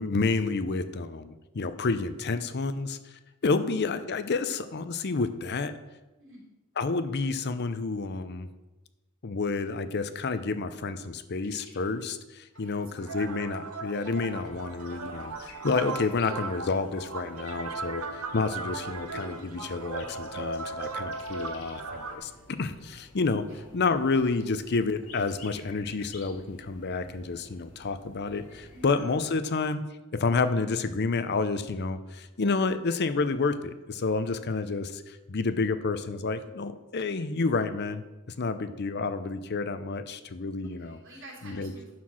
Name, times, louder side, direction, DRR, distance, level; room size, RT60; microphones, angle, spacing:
voice 1, 0.0-3.0 3.4-5.7 6.8-8.5 9.2-18.0 18.3-23.5 23.7-29.8 30.1-38.0 38.4-41.0 41.4-41.7, left 4 dB, 50° left, 11 dB, 0.6 m, -29 dB
voice 2, 6.2-6.5 12.6-13.2 23.5-23.7 28.7-29.0 40.8-41.9, right 1 dB, 60° right, -3 dB, 3.4 m, -49 dB
sound 1, 11.4-11.9 12.5-12.7 13.6-16.5 18.8-21.9 22.1-22.3 23.8-26.5, left 4 dB, 75° left, 1.6 m, -52 dB
sound 2, 13.1-22.2, right 3 dB, 85° right, 0.9 m, -37 dB
sound 3, 14.2-29.4, left 1 dB, 90° left, 2.1 m, -55 dB
11.0 x 4.5 x 6.1 m, 1.1 s
head